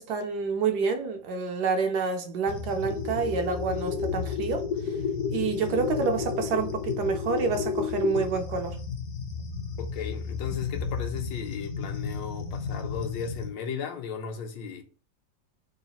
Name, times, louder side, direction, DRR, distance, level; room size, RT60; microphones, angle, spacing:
voice 1, 0.0-4.6 5.3-8.8, right 5 dB, 70° right, 1.1 m, -28 dB
sound 1, 2.5-13.5, left 6 dB, 65° left, 0.9 m, -32 dB
voice 2, 9.8-14.8, left 6 dB, 80° left, 1.4 m, -35 dB
3.8 x 2.4 x 4.0 m
omnidirectional pair, 2.0 m